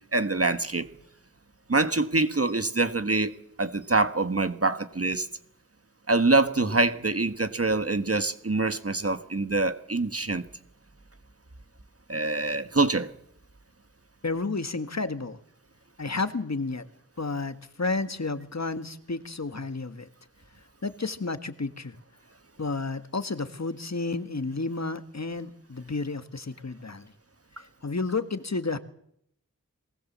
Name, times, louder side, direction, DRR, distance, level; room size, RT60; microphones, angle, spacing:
voice 1, 0.1-0.9 1.7-3.3 3.6-5.3 6.1-10.4 12.1-13.1, right 3 dB, 45° right, 10 dB, 1.5 m, -25 dB
voice 2, 14.2-15.4 16.0-16.9 17.2-20.1 20.8-22.0 22.6-27.1 27.6-28.8, left 3 dB, 55° left, 10 dB, 1.6 m, -31 dB
23.0 x 19.5 x 7.4 m, 0.70 s
wide cardioid pair, 45°, 32 cm